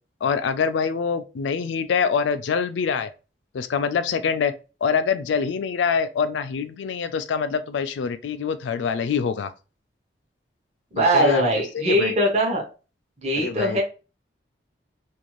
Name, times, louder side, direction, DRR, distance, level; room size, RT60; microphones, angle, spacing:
voice 1, 0.2-3.1 3.5-4.5 4.8-9.5 11.0-11.4 11.7-12.1 13.4-13.8, left 6 dB, 80° left, 0.3 m, -25 dB
voice 2, 10.9-12.6 13.2-13.8, right 1 dB, 35° right, 0.8 m, -21 dB
2.5 x 2.3 x 3.0 m
head